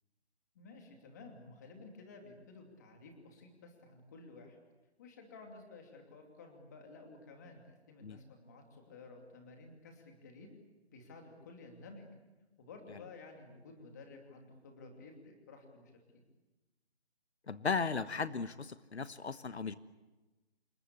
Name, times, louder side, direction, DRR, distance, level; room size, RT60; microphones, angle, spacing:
voice 1, 0.5-4.6 5.0-10.5 10.9-12.1 12.6-16.2, left 3 dB, 15° left, 3 dB, 2.7 m, -53 dB
voice 2, 17.5-19.8, left 5 dB, 80° left, 13 dB, 1.2 m, -36 dB
27.5 x 21.0 x 8.3 m, 1.1 s
hypercardioid pair, 175°, 33 cm